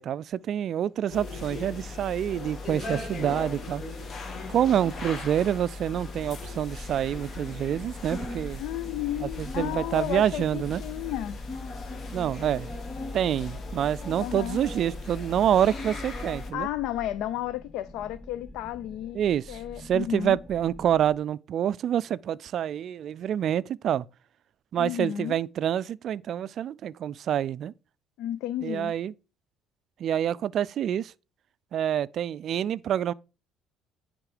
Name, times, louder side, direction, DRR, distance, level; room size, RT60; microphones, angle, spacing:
voice 1, 0.0-3.8 4.5-8.6 9.2-10.8 12.1-12.7 13.1-16.7 19.1-24.1 24.7-27.7 28.6-29.1 30.0-31.1 31.7-33.1, right 10 dB, 55° right, 0.3 m, -27 dB
sound 1, 1.1-16.5, left 3 dB, 45° left, 1.7 m, -38 dB
sound 2, 5.9-21.2, left 1 dB, 25° left, 0.8 m, -47 dB
voice 2, 8.6-11.4 14.2-14.6 16.5-19.2 19.5-20.4 24.8-25.4 28.2-28.9, left 13 dB, 80° left, 0.4 m, -33 dB
9.8 x 3.6 x 4.9 m
cardioid pair, 100°, 0 cm